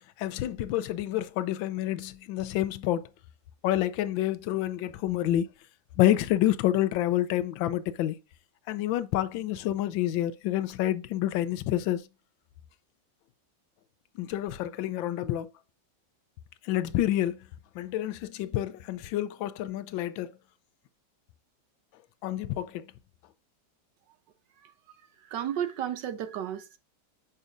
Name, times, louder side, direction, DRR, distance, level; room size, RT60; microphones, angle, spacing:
voice 1, 0.2-3.1 3.6-5.5 6.0-8.2 8.7-12.0 14.2-15.5 16.6-17.4 17.7-20.3 22.2-22.9, left 13 dB, 90° left, 1.4 m, -28 dB
voice 2, 25.2-26.8, right 10 dB, 75° right, 1.3 m, -33 dB
7.1 x 5.5 x 2.5 m
omnidirectional pair, 2.1 m